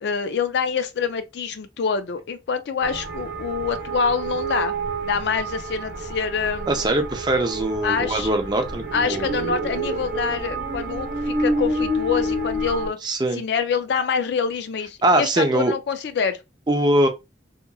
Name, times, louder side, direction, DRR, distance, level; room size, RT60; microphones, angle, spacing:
voice 1, 0.0-4.7 5.0-6.8 7.8-8.3 8.9-13.0 13.3-16.4, left 6 dB, 65° left, 0.4 m, -26 dB
sound 1, 2.8-12.9, right 1 dB, 50° right, 0.9 m, -28 dB
voice 2, 6.7-9.3 13.0-13.4 15.0-15.7 16.7-17.1, right 1 dB, 25° right, 0.5 m, -21 dB
2.8 x 2.5 x 2.2 m
head